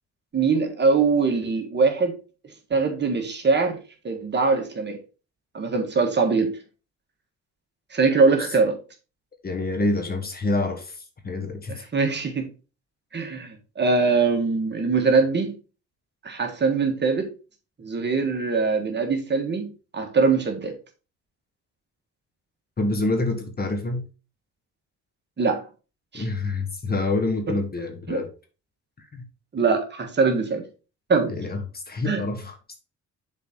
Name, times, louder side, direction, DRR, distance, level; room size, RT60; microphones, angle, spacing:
voice 1, 0.3-2.2 2.7-5.0 5.5-6.6 7.9-8.8 11.7-12.5 13.1-15.5 16.2-17.3 17.8-20.7 25.4-25.6 26.1-26.2 27.5-27.6 28.1-28.2 29.5-30.6 31.1-31.3 32.1-32.2, right 4 dB, 35° right, 1.6 m, -22 dB
voice 2, 9.4-11.0 11.2-11.9 22.8-24.1 26.1-28.3 29.1-29.2 31.3-32.5, left 2 dB, 30° left, 1.5 m, -27 dB
7.2 x 4.1 x 3.7 m
cardioid pair, 90°, 30 cm